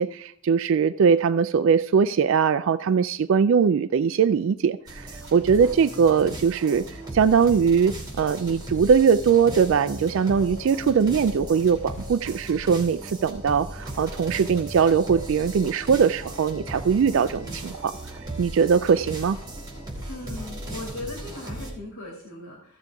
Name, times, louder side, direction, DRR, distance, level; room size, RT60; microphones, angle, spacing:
voice 1, 0.0-6.8 7.1-17.9 18.4-19.4, right 6 dB, 60° right, 0.3 m, -21 dB
sound 1, 4.9-21.7, right 1 dB, 20° right, 2.8 m, -37 dB
voice 2, 20.1-22.8, left 2 dB, 85° left, 2.5 m, -38 dB
15.5 x 6.8 x 3.5 m
head